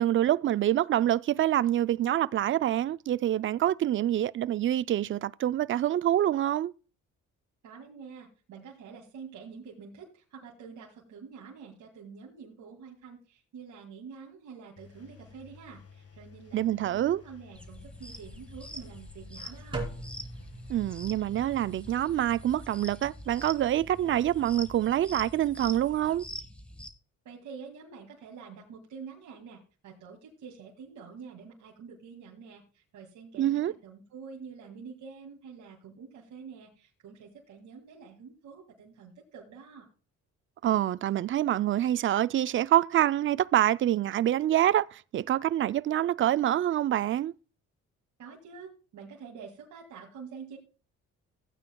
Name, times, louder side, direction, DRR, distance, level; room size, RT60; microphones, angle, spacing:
voice 1, 0.0-6.7 16.5-17.2 20.7-26.2 33.4-33.7 40.6-47.3, right 12 dB, 40° right, 0.4 m, -26 dB
voice 2, 7.6-19.9 27.2-39.9 48.2-50.6, right 6 dB, 75° right, 2.3 m, -47 dB
Engine, 14.8-24.8, left 6 dB, 50° left, 1.7 m, -53 dB
sound 1, 17.5-26.9, equal, 5° left, 1.5 m, -45 dB
sound 2, 19.7-25.9, right 2 dB, 15° right, 3.1 m, -44 dB
15.5 x 8.9 x 2.2 m
cardioid pair, 90°, 30 cm